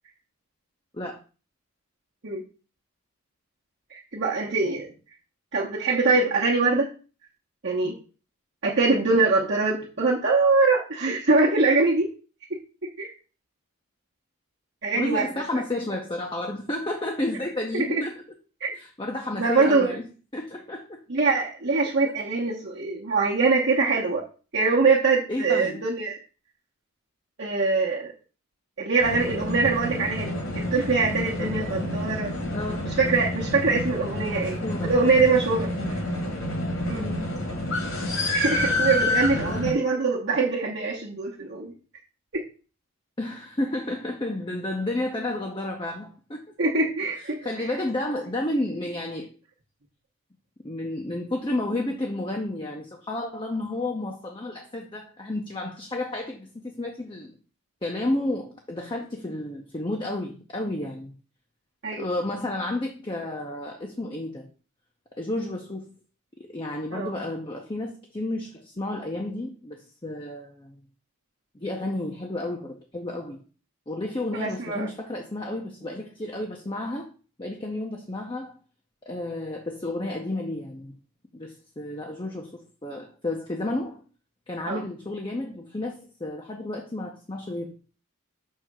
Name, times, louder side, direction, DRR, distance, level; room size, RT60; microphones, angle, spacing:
voice 1, 3.9-4.9 5.5-6.9 7.6-8.0 8.6-12.1 13.0-13.1 14.8-15.3 17.7-18.0 19.4-19.9 21.1-24.2 24.5-26.2 27.4-28.1 28.8-32.3 33.0-34.6 34.8-35.7 36.8-37.1 38.3-41.7 42.3-42.4 46.6-47.7 61.8-62.1 66.9-67.1 74.3-74.9 84.7-84.8, right 3 dB, 50° right, -5 dB, 1.0 m, -23 dB
voice 2, 14.9-18.1 18.8-20.1 20.3-21.0 25.3-25.8 31.4-31.8 32.5-32.8 34.2-34.8 35.8-35.9 36.9-37.3 39.3-39.6 43.2-46.4 47.1-49.3 50.6-57.3 57.8-61.1 61.9-64.5 65.2-65.8 66.4-70.8 71.5-73.4 73.9-77.1 77.4-78.5 79.1-80.9 81.3-84.0 84.5-87.7, left 1 dB, 20° left, 1 dB, 0.7 m, -31 dB
sound 1, 29.0-39.7, left 1 dB, 60° left, 1.8 m, -28 dB
6.5 x 3.4 x 6.1 m, 0.36 s
head